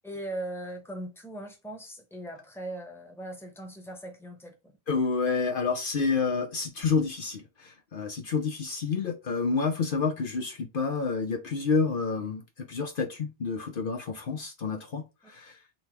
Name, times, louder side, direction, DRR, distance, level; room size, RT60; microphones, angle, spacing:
voice 1, 0.0-4.5, right 1 dB, ahead, 1.0 m, -39 dB
voice 2, 4.9-15.6, left 5 dB, 60° left, 0.9 m, -29 dB
4.0 x 2.8 x 4.5 m
omnidirectional pair, 1.1 m